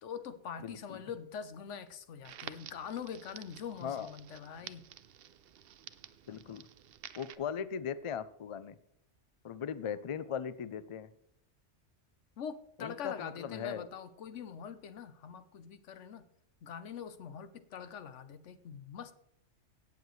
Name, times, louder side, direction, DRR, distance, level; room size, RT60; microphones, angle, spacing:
voice 1, 0.0-4.9 12.4-16.2 16.6-19.1, left 7 dB, 80° left, 1.1 m, -44 dB
voice 2, 0.6-1.0 3.8-4.1 6.3-6.7 7.2-8.8 9.4-11.1 12.8-13.9, left 7 dB, 55° left, 0.3 m, -38 dB
Crackle, 2.2-7.3, right 10 dB, 60° right, 0.7 m, -51 dB
17.0 x 7.2 x 3.2 m
omnidirectional pair, 1.2 m